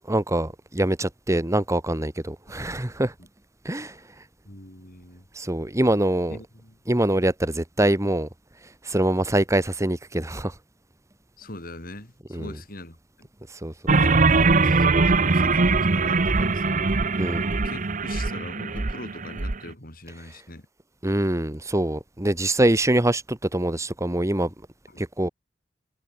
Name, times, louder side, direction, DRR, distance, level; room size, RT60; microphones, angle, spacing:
voice 1, 0.1-3.1 3.6-4.0 5.3-6.4 6.9-8.3 8.8-10.5 12.3-12.5 13.5-13.9 17.2-17.4 21.0-24.5 25.0-25.3, right 1 dB, 15° right, 1.4 m, -24 dB
voice 2, 4.4-5.2 6.3-7.2 11.4-13.3 14.0-17.2 17.6-20.7 24.9-25.1, left 2 dB, 55° left, 5.0 m, -41 dB
sound 1, 13.9-19.6, right 3 dB, 45° right, 1.0 m, -21 dB
head